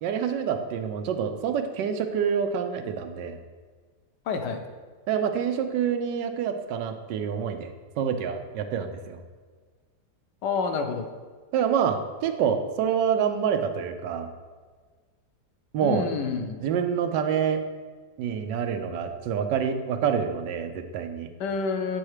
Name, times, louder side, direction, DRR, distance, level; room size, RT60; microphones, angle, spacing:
voice 1, 0.0-3.4 5.1-9.2 11.5-14.3 15.7-16.0 16.6-17.6 18.2-21.3, right 7 dB, 85° right, 7 dB, 1.3 m, -27 dB
voice 2, 4.3-4.6 10.4-11.1 15.8-16.5 21.4-22.0, left 5 dB, 75° left, 6 dB, 1.3 m, -28 dB
7.7 x 4.2 x 4.8 m, 1.5 s
omnidirectional pair, 1.8 m